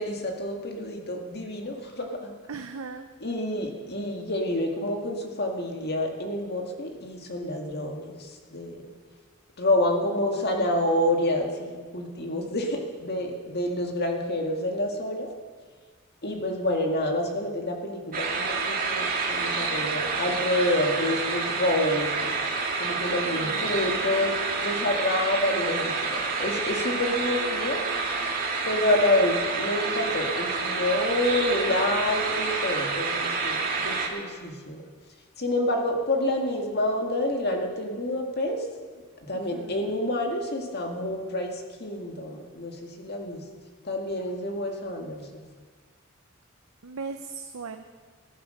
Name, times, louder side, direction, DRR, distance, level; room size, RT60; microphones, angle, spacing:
voice 1, 0.0-2.3 3.2-8.8 9.6-15.3 16.2-22.4 22.8-24.3 24.6-27.8 28.7-34.8 35.4-38.7 39.2-43.5 43.8-45.3, left 1 dB, 50° left, 2 dB, 2.0 m, -28 dB
voice 2, 2.5-3.1 23.2-23.7 39.3-39.8 46.8-47.8, right 4 dB, 90° right, 6 dB, 0.7 m, -38 dB
sound 1, 18.1-34.1, right 4 dB, 45° right, 2.1 m, -28 dB
14.5 x 10.5 x 6.5 m, 1.5 s
head